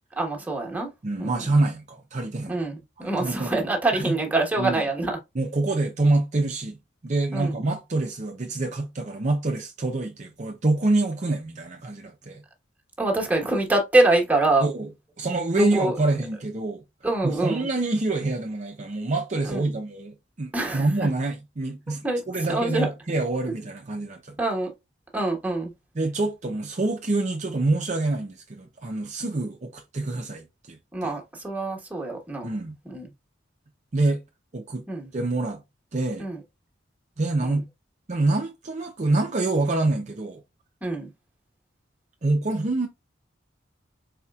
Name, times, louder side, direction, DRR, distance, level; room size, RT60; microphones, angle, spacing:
voice 1, 0.2-0.9 1.2-1.5 2.5-5.2 7.3-7.5 13.0-14.7 15.6-16.0 17.0-17.7 19.5-19.6 20.5-20.8 22.0-22.2 22.5-22.9 24.4-24.7 25.1-25.7 30.9-32.5 32.9-33.1 34.9-35.1 36.2-36.4 37.4-37.6 40.8-41.1, right 2 dB, 10° right, 1.2 m, -25 dB
voice 2, 1.0-2.6 3.0-3.7 3.9-4.2 4.6-4.8 5.3-6.8 7.0-12.4 14.6-14.9 15.2-16.8 17.2-24.3 25.9-31.2 32.4-32.8 33.9-34.2 34.5-34.8 35.1-35.6 35.9-36.3 37.2-37.6 38.1-40.4 42.2-42.9, right 2 dB, 40° right, 0.6 m, -26 dB
4.2 x 4.1 x 2.4 m
head